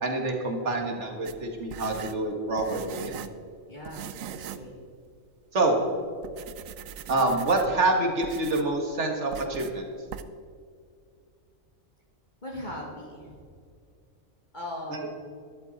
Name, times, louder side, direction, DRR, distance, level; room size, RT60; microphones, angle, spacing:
voice 1, 0.0-3.1 5.5-5.8 7.1-9.9 14.9-15.0, right 2 dB, 55° right, 2 dB, 2.0 m, -26 dB
sound 1, 1.3-3.4 3.9-4.7 5.1-5.2 5.8-5.9 6.2-7.8 8.2-8.8 9.3-9.8 10.1-10.2, right 9 dB, 75° right, 1.0 m, -41 dB
voice 2, 3.7-4.7 12.4-13.4 14.5-15.3, left 1 dB, 35° left, -2 dB, 2.1 m, -39 dB
12.0 x 12.0 x 4.1 m, 2.2 s
omnidirectional pair, 1.4 m